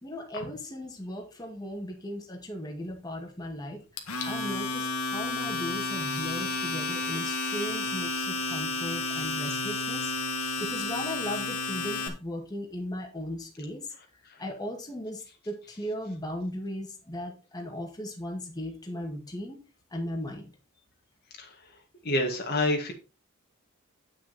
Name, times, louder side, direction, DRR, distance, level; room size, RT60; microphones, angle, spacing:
voice 1, 0.0-3.8 4.2-10.1 10.6-13.9 14.4-19.6 19.9-20.5, equal, 15° left, 1 dB, 1.9 m, -37 dB
Domestic sounds home sounds, 4.0-12.1, left 3 dB, 80° left, 2.0 m, -31 dB
voice 2, 22.0-22.9, left 1 dB, 45° left, 3 dB, 1.8 m, -27 dB
9.7 x 6.5 x 4.2 m, 0.32 s
head